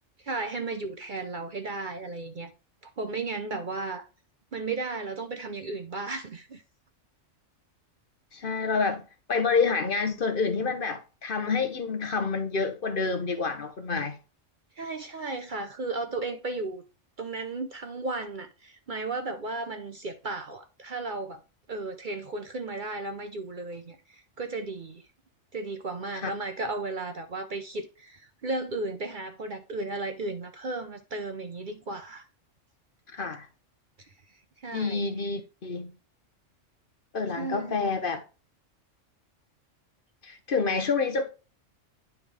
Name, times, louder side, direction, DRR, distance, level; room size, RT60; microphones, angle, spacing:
voice 1, 0.2-2.5 3.0-4.1 4.5-6.6 14.8-16.8 17.2-21.4 21.7-25.0 25.5-32.3 34.6-35.0 37.4-37.8, right 3 dB, 45° right, 0.8 m, -34 dB
voice 2, 8.3-9.0 9.3-14.2 26.1-26.3 33.1-33.5 34.7-35.9 37.1-38.2 40.2-41.3, left 4 dB, 45° left, 1.0 m, -28 dB
9.7 x 3.6 x 4.8 m
omnidirectional pair, 1.3 m